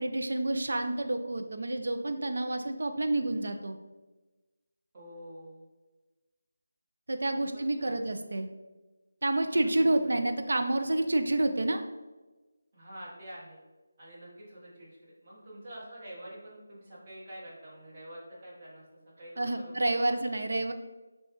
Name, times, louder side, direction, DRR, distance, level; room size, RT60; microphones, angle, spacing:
voice 1, 0.0-3.8 7.1-8.5 9.2-11.8 19.4-20.7, right 2 dB, 70° right, 7 dB, 0.5 m, -29 dB
voice 2, 4.9-5.6 7.3-8.1 9.6-9.7 10.0-10.1 12.7-13.6 14.0-18.8 19.2-20.1, right 1 dB, 30° right, -7 dB, 1.4 m, -47 dB
6.2 x 2.4 x 3.0 m, 1.2 s
figure-of-eight pair, 165°, 0 cm